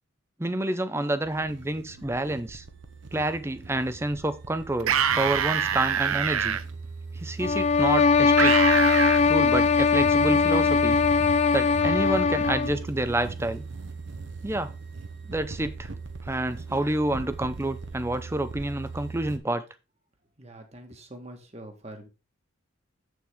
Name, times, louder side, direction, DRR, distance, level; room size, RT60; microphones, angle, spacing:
voice 1, 0.4-2.6 3.1-6.6 7.2-8.6 9.3-11.0 11.5-13.6 14.4-14.7 15.3-15.9 16.2-19.6, right 1 dB, 10° right, 0.6 m, -28 dB
sound 1, 1.2-19.4, right 4 dB, 60° right, 1.1 m, -38 dB
sound 2, 4.8-6.6 8.4-9.2, right 8 dB, 85° right, 0.7 m, -25 dB
sound 3, 7.4-12.8, left 5 dB, 30° left, 0.3 m, -21 dB
voice 2, 20.4-22.1, right 1 dB, 30° right, 1.6 m, -44 dB
8.0 x 7.1 x 3.6 m
head